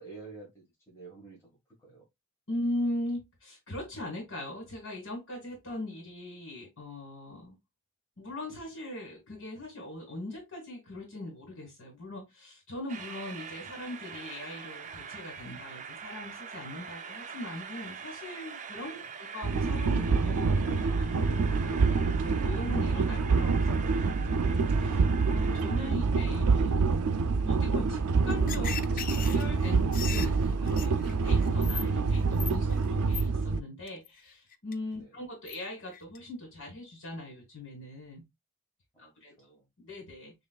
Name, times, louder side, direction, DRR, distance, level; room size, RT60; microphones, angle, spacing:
voice 1, 0.0-2.0 18.9-19.1 35.0-35.2 38.9-39.1 39.4-39.7, right 4 dB, 15° left, -5 dB, 1.7 m, -50 dB
voice 2, 2.5-7.6 8.2-21.8 22.2-26.9 27.5-29.1 29.3-38.2 39.0-39.3 39.8-40.3, left 1 dB, 60° left, 1 dB, 2.0 m, -40 dB
Train, 12.9-25.9, right 6 dB, 35° right, 0.5 m, -44 dB
sound 1, 19.4-33.6, right 4 dB, 85° right, 0.4 m, -26 dB
sound 2, 28.3-31.8 32.1-32.8 33.1-33.2 33.9-34.1 34.5-34.7 35.5-35.6 35.9-36.2, left 8 dB, 40° left, 0.5 m, -38 dB
6.5 x 3.1 x 2.3 m, 0.19 s
head